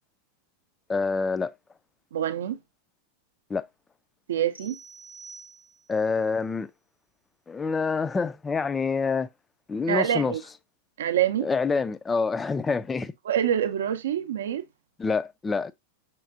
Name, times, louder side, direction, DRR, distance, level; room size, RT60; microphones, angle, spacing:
voice 1, 0.9-1.5 3.5-3.7 5.9-6.7 7.5-9.3 9.7-10.4 11.4-13.1 15.0-15.7, left 4 dB, 15° left, 0.3 m, -26 dB
voice 2, 2.1-2.6 4.3-4.8 9.9-10.4 11.0-11.5 13.3-14.7, right 10 dB, 60° right, 0.5 m, -26 dB
sound 1, 4.5-6.1, right 4 dB, 85° left, 1.2 m, -47 dB
5.7 x 3.1 x 2.5 m
figure-of-eight pair, 90°, 0 cm